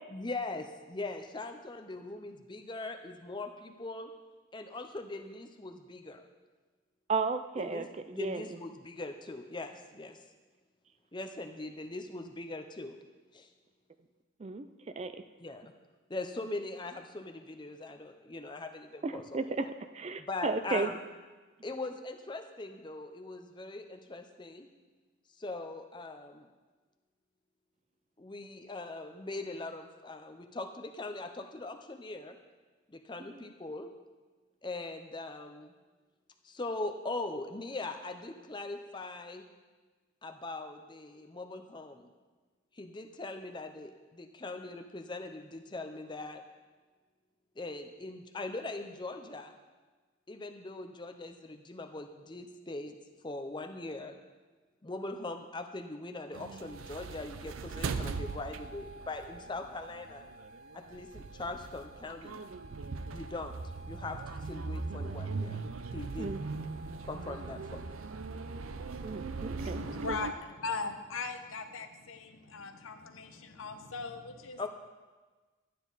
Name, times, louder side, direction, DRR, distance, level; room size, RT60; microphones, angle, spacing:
voice 1, 0.1-4.1 4.5-6.2 7.6-10.2 11.1-13.0 13.3-13.5 15.4-15.7 16.1-19.4 20.2-21.0 21.6-24.7 25.4-26.5 28.2-32.4 32.9-33.9 34.6-35.7 36.4-39.4 40.2-42.1 42.7-46.4 47.6-49.5 50.3-53.0 53.2-54.2 54.8-60.3 60.7-62.4 63.1-63.6 63.9-66.3 67.0-68.0 74.6-74.7, left 2 dB, 20° left, 6 dB, 0.6 m, -41 dB
voice 2, 7.1-8.4 14.4-14.7 15.0-15.1 19.0-19.7 19.9-20.9 66.2-66.4 69.0-69.8, right 4 dB, 30° right, 10 dB, 0.4 m, -33 dB
sound 1, 56.3-70.3, right 4 dB, 85° right, 0.5 m, -40 dB
voice 3, 69.6-74.7, left 4 dB, 80° left, 7 dB, 0.9 m, -39 dB
12.0 x 9.3 x 4.0 m, 1.3 s
head